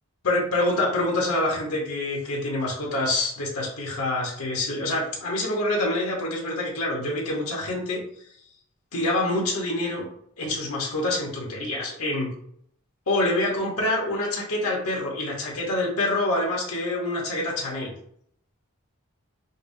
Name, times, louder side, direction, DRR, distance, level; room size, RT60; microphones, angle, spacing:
voice 1, 0.2-8.0 8.9-10.1 10.4-12.3 13.1-17.9, left 2 dB, 80° left, -2 dB, 1.0 m, -26 dB
5.2 x 2.1 x 2.6 m, 0.67 s
head